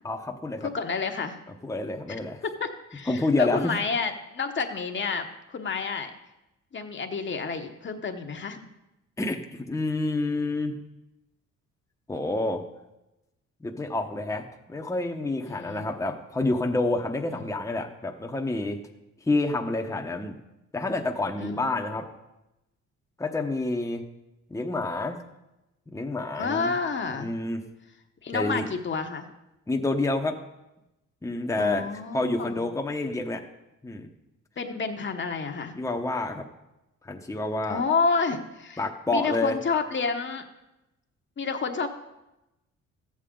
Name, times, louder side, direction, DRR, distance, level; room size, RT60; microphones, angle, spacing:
voice 1, 0.0-0.7 1.6-2.4 3.1-3.7 9.2-10.8 12.1-12.6 13.6-18.8 19.3-20.4 20.7-22.1 23.2-24.0 24.5-25.2 25.9-26.7 27.1-27.6 28.3-28.7 29.7-30.4 31.2-33.4 33.8-34.1 35.8-36.4 37.0-37.8 38.8-39.6, left 2 dB, 10° left, 2 dB, 0.9 m, -28 dB
voice 2, 0.6-1.4 2.6-6.1 6.7-8.7 15.5-15.9 17.3-17.4 21.4-21.8 26.3-27.3 28.2-29.2 31.6-32.7 34.6-35.7 37.7-38.8 39.1-40.4 41.4-41.9, left 4 dB, 40° left, 5 dB, 1.1 m, -29 dB
13.5 x 8.6 x 3.8 m, 0.95 s
cardioid pair, 90°, 30 cm